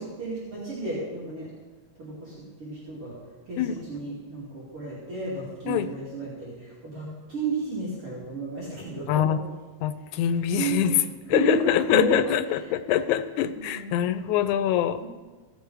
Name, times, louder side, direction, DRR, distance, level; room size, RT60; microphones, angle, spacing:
voice 1, 0.0-1.5 2.0-3.1 3.5-9.3 10.1-10.2 10.5-10.9 11.3-12.2 12.5-12.7 13.5-14.0 15.0-15.1, right 3 dB, 50° right, -8 dB, 3.3 m, -32 dB
voice 2, 9.1-9.4 9.8-10.9 11.3-15.1, left 10 dB, 90° left, 11 dB, 2.1 m, -24 dB
16.0 x 7.0 x 4.6 m, 1.3 s
omnidirectional pair, 3.4 m